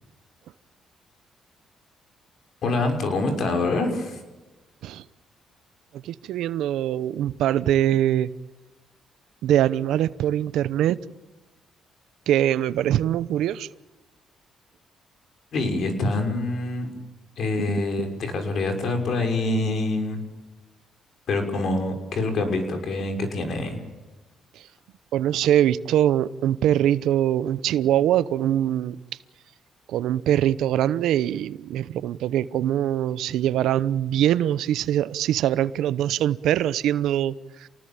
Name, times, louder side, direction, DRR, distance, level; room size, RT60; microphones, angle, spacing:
voice 1, 2.6-4.2 15.5-16.9 17.4-20.2 21.3-23.8, left 2 dB, 60° left, 6.1 m, -25 dB
voice 2, 5.9-8.3 9.4-11.0 12.3-13.7 17.6-17.9 24.5-24.7 25.1-29.0 29.9-37.7, right 11 dB, 85° right, 0.9 m, -23 dB
28.0 x 19.5 x 8.9 m
cardioid pair, 90°, 0 cm